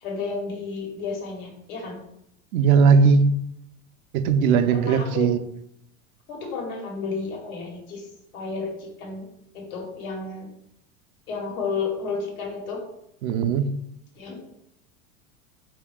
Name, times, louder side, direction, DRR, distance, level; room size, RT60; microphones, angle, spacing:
voice 1, 0.0-2.0 4.7-5.3 6.3-8.0 8.3-9.3 9.5-10.5 11.3-12.8 14.2-14.4, left 4 dB, 80° left, 0 dB, 1.5 m, -32 dB
voice 2, 2.5-3.3 4.1-5.4 13.2-13.7, right 5 dB, 80° right, 10 dB, 0.6 m, -18 dB
4.4 x 2.9 x 3.6 m, 0.78 s
hypercardioid pair, 100°, 42 cm